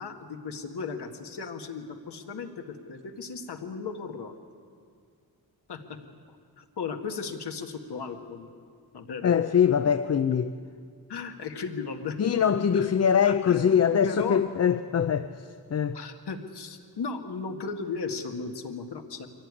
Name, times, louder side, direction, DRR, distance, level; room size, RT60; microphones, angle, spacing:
voice 1, 0.0-4.4 5.7-6.0 6.3-8.5 8.9-9.3 11.1-12.2 12.7-12.9 13.2-14.4 15.9-19.3, left 5 dB, 85° left, 1.8 m, -36 dB
voice 2, 9.2-10.5 12.2-16.0, left 8 dB, 40° left, 0.5 m, -23 dB
23.5 x 17.0 x 9.7 m
wide cardioid pair, 170°, 39 cm